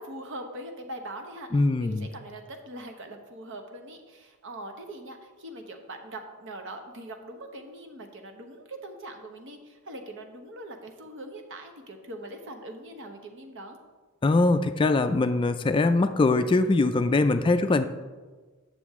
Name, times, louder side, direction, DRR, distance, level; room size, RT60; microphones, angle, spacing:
voice 1, 0.0-13.8 17.6-17.7, right 1 dB, 60° right, 5 dB, 1.0 m, -42 dB
voice 2, 1.5-2.1 14.2-17.9, left 3 dB, 25° left, 9 dB, 0.3 m, -22 dB
9.0 x 6.8 x 3.6 m, 1.3 s
head